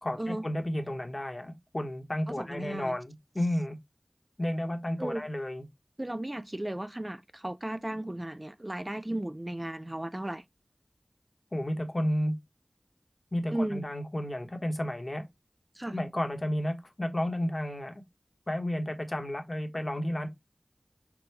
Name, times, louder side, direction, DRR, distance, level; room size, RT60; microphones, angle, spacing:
voice 1, 0.0-3.8 4.4-5.6 11.5-12.3 13.3-15.2 15.9-17.9 18.5-20.3, left 1 dB, 40° left, 1.1 m, -32 dB
voice 2, 2.3-3.0 5.0-5.2 6.0-10.4 13.5-13.8 15.8-16.0, right 1 dB, 30° right, 0.3 m, -35 dB
5.9 x 2.2 x 3.3 m
wide cardioid pair, 45°, 0 cm